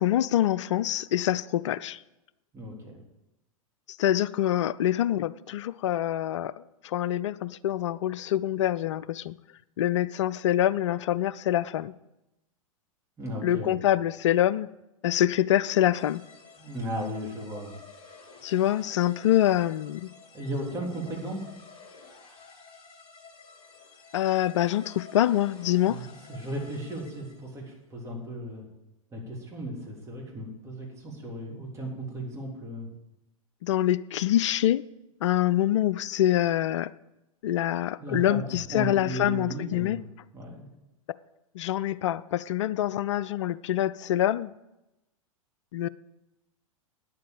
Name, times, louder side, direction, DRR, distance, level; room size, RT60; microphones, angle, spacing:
voice 1, 0.0-2.0 4.0-6.5 6.8-9.4 9.8-11.9 13.4-14.7 15.0-16.2 18.4-20.1 24.1-26.1 33.6-34.8 35.2-36.9 37.4-40.0 41.5-44.5 45.7-45.9, left 12 dB, 55° left, 0.4 m, -25 dB
voice 2, 2.5-3.0 13.2-13.7 16.6-17.8 20.3-21.4 25.8-28.7 29.1-32.9 38.0-38.4 38.7-40.0 40.3-40.7, right 1 dB, 15° right, 3.5 m, -35 dB
sound 1, 15.9-27.6, left 5 dB, 25° left, 3.0 m, -51 dB
9.3 x 7.5 x 8.8 m
figure-of-eight pair, 95°, 18 cm